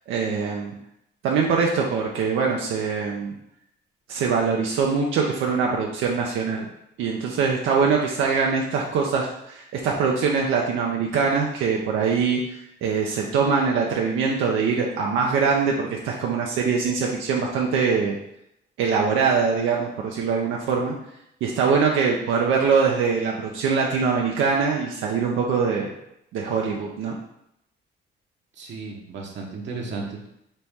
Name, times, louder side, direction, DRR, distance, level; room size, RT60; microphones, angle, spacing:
voice 1, 0.1-0.7 1.2-3.3 4.1-6.7 7.0-18.2 18.8-20.9 21.4-25.9 26.3-27.2, right 5 dB, 90° right, -1 dB, 0.6 m, -23 dB
voice 2, 28.6-30.3, right 4 dB, 65° right, 0 dB, 0.9 m, -34 dB
4.2 x 3.0 x 3.5 m, 0.78 s
cardioid pair, 90°, 20 cm